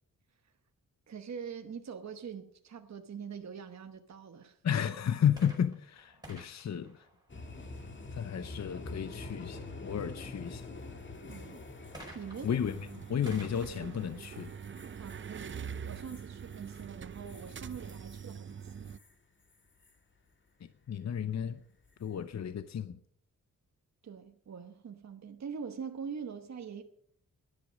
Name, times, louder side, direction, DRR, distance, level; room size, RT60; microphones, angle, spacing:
voice 1, 1.1-4.6 11.2-11.7 12.1-12.5 15.0-19.0 24.0-26.8, right 6 dB, 55° right, 1.1 m, -44 dB
voice 2, 4.6-7.0 8.1-10.7 12.4-14.5 20.6-21.6 22.0-23.0, left 8 dB, 55° left, 0.7 m, -33 dB
sound 1, 5.3-7.9 11.9-15.6 16.4-16.5, right 1 dB, 10° right, 4.8 m, -54 dB
sound 2, 7.3-19.1 19.5-19.9 21.8-22.2, left 2 dB, 35° left, 1.9 m, -48 dB
sound 3, 12.6-19.0, right 7 dB, 35° right, 0.5 m, -44 dB
17.0 x 11.0 x 5.1 m
wide cardioid pair, 125°, 33 cm